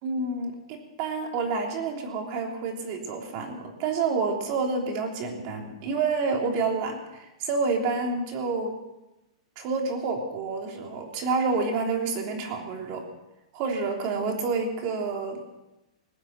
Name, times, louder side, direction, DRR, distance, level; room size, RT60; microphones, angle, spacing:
voice 1, 0.0-8.7 9.6-13.0 13.5-15.4, right 4 dB, 40° right, 2 dB, 3.2 m, -28 dB
19.5 x 7.5 x 9.0 m, 0.99 s
hypercardioid pair, 150°, 4 cm